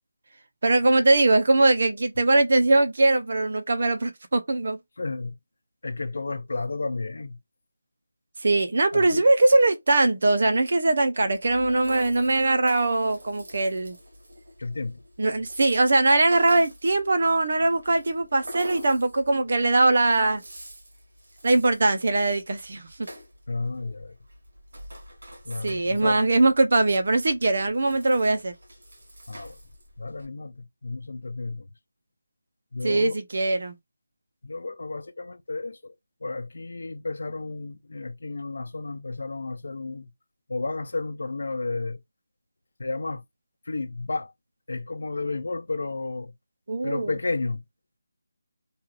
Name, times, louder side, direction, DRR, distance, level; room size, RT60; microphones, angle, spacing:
voice 1, 0.6-4.8 8.4-14.0 15.2-20.4 21.4-23.1 25.6-28.5 32.8-33.8 46.7-47.1, right 2 dB, 50° right, 0.6 m, -21 dB
voice 2, 5.0-5.4 5.8-7.4 8.9-9.3 14.6-15.0 23.5-24.1 25.4-26.2 29.3-29.6 30.0-31.7 32.7-33.1 34.4-35.9 36.2-40.1 40.5-42.0 42.8-43.2 43.7-44.3 44.7-46.3 46.8-47.6, left 3 dB, 65° left, 0.6 m, -32 dB
Rattle (instrument), 11.3-30.3, equal, 80° right, 1.4 m, -46 dB
3.1 x 2.4 x 3.1 m
figure-of-eight pair, 175°, 0 cm